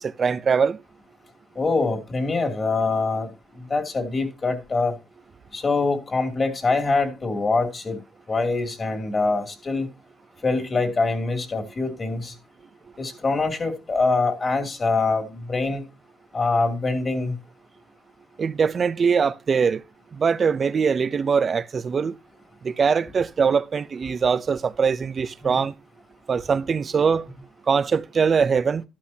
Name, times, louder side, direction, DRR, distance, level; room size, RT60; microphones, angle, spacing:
voice 1, 0.0-0.8 18.4-19.8 20.1-22.1 22.6-25.7 26.3-27.3 27.7-28.8, right 6 dB, 45° right, 0.6 m, -22 dB
voice 2, 1.6-3.3 3.6-5.0 5.5-8.0 8.3-9.9 10.4-12.3 13.0-15.8 16.3-17.4 25.4-25.6, left 3 dB, 35° left, 2.7 m, -24 dB
12.5 x 11.5 x 2.8 m
cardioid pair, 90°, 0 cm